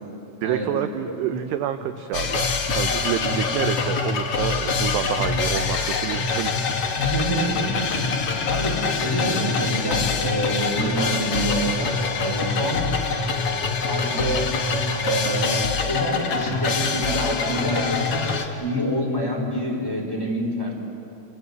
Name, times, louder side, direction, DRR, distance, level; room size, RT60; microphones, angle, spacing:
voice 1, 0.4-7.1, right 11 dB, 80° right, 9 dB, 2.4 m, -28 dB
sound 1, 2.1-18.4, left 4 dB, 60° left, 1.5 m, -24 dB
voice 2, 6.9-7.7 8.5-11.9 12.2-12.9 13.9-14.5 15.0-20.7, equal, 5° left, -1 dB, 3.9 m, -27 dB
28.5 x 25.5 x 8.1 m, 2.8 s
omnidirectional pair, 5.6 m